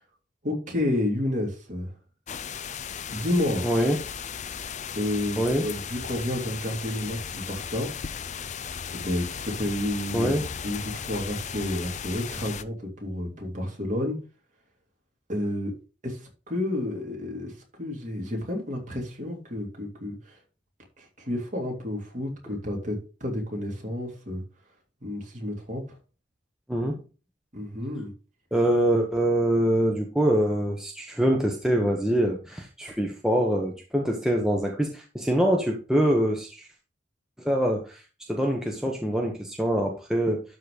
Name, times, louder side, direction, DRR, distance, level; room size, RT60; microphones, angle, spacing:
voice 1, 0.4-1.9 3.1-3.7 4.9-7.9 8.9-10.3 10.6-14.2 15.3-15.7 16.0-20.4 21.0-24.4 25.0-26.0 27.5-28.1, left 1 dB, 40° right, 0 dB, 3.1 m, -30 dB
sound 1, 2.3-12.6, left 7 dB, 40° left, 0.5 m, -36 dB
voice 2, 3.6-4.0 5.4-5.6 10.1-10.4 26.7-27.0 28.5-36.6 37.4-38.0 38.3-40.4, equal, 5° right, 0 dB, 1.1 m, -24 dB
12.0 x 4.0 x 4.9 m, 0.34 s
head